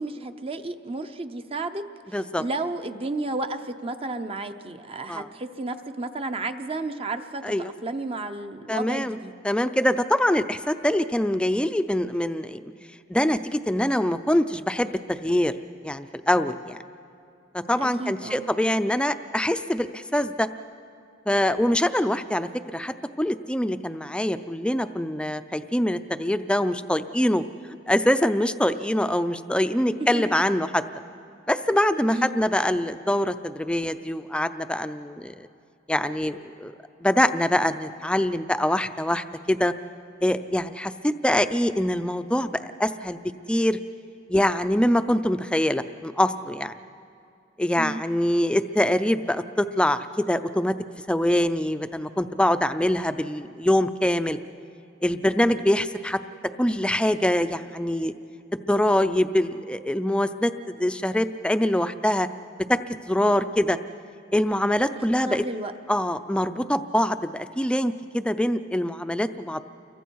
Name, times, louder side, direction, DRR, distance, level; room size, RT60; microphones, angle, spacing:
voice 1, 0.0-1.8 2.4-7.4 7.8-9.3 17.8-18.5 30.1-30.2 32.1-32.4 47.8-48.0 65.3-65.7, right 2 dB, 30° right, 8 dB, 0.7 m, -32 dB
voice 2, 2.1-2.4 5.1-5.3 7.4-7.7 8.7-9.2 9.4-12.7 13.1-15.5 15.8-16.8 17.5-20.5 21.3-27.4 27.9-30.8 31.5-35.5 35.9-36.7 37.0-39.7 40.2-43.2 43.5-43.8 44.3-46.7 47.6-50.7 51.1-54.4 55.0-56.2 56.6-58.1 58.5-62.3 62.7-63.8 64.3-65.4 65.9-69.7, left 1 dB, 5° left, 10 dB, 0.5 m, -24 dB
29.5 x 23.0 x 4.7 m, 2.5 s
head